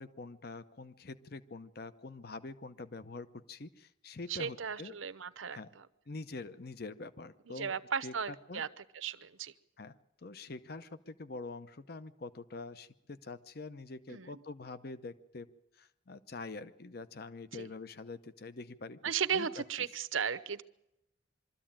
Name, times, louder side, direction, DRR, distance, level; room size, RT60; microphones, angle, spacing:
voice 1, 0.0-4.9 5.5-5.7 6.1-7.7 8.0-8.6 9.8-15.5 15.7-19.0 19.3-19.6, left 3 dB, 50° left, 13 dB, 0.8 m, -45 dB
voice 2, 4.3-5.9 7.5-9.5 14.1-14.4 17.5-17.7 19.0-20.6, right 7 dB, 85° right, 14 dB, 0.9 m, -36 dB
23.5 x 13.5 x 8.8 m, 0.87 s
head